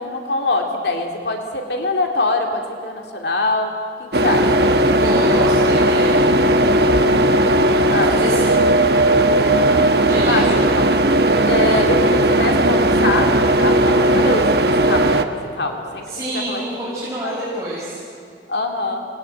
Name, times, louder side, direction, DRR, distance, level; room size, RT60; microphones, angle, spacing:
voice 1, 0.0-3.7 4.0-4.5 6.9-7.3 7.9-8.1 8.3-8.4 9.4-9.7 10.2-10.8 11.5-13.3 13.6-14.5 14.9-16.0 16.5-17.0 17.2-17.4 18.5-19.1, left 2 dB, 70° left, 3 dB, 2.5 m, -23 dB
sound 1, 4.1-15.2, right 1 dB, 60° right, 1.3 m, -16 dB
voice 2, 4.2-4.6 4.9-6.2 7.8-8.5 10.0-10.6 16.0-18.0, right 1 dB, 15° right, -7 dB, 5.7 m, -28 dB
27.5 x 20.0 x 9.2 m, 2.6 s
head